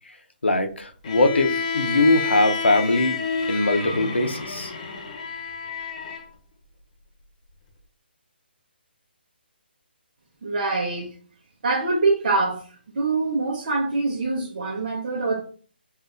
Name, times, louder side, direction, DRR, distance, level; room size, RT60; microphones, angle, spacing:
voice 1, 0.4-3.2 3.5-4.7, left 2 dB, 90° left, 0.8 m, -21 dB
Bowed string instrument, 1.0-6.3, left 5 dB, 40° left, 1.0 m, -29 dB
voice 2, 10.4-11.1 11.6-12.6 12.9-15.4, right 3 dB, 50° right, 1.0 m, -24 dB
5.5 x 2.6 x 2.5 m
hypercardioid pair, 155°, 6 cm